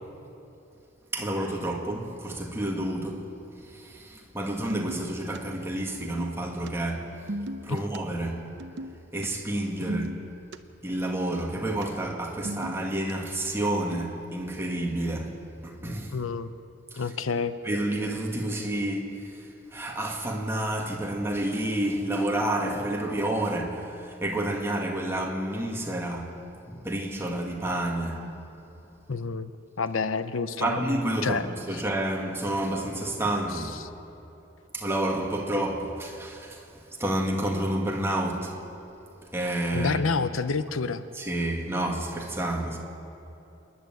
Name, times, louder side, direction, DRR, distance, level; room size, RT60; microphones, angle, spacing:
voice 1, 1.1-3.2 3.6-7.1 7.6-8.4 9.1-10.1 10.8-15.4 15.6-16.1 16.9-17.0 17.6-19.4 19.7-26.4 26.7-28.3 30.6-33.8 34.7-38.6 39.3-40.0 41.2-42.8, right 1 dB, 10° right, 2.1 m, -29 dB
sound 1, 4.7-5.4 5.9-6.7 7.1-8.0 8.6-9.0 9.2-9.3 9.5-10.6 11.1-11.8 12.3-13.1 13.7-14.1, equal, 60° right, 0.8 m, -36 dB
voice 2, 16.1-16.5 17.0-17.6 29.1-29.5 29.8-31.5 31.7-31.8 33.5-33.9 39.7-41.0, left 4 dB, 85° left, 0.8 m, -29 dB
27.5 x 11.0 x 9.2 m
head